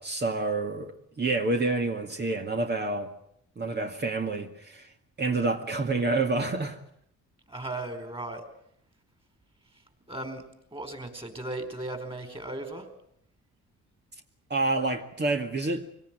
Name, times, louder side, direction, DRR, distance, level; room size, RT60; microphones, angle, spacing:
voice 1, 0.0-3.1 3.6-4.9 5.2-6.8 14.5-15.8, right 3 dB, 35° right, 2.2 m, -28 dB
voice 2, 7.5-8.4 10.1-10.4 10.7-12.9, right 2 dB, 20° right, 4.8 m, -36 dB
24.0 x 18.0 x 9.2 m
cardioid pair, 90°, 30 cm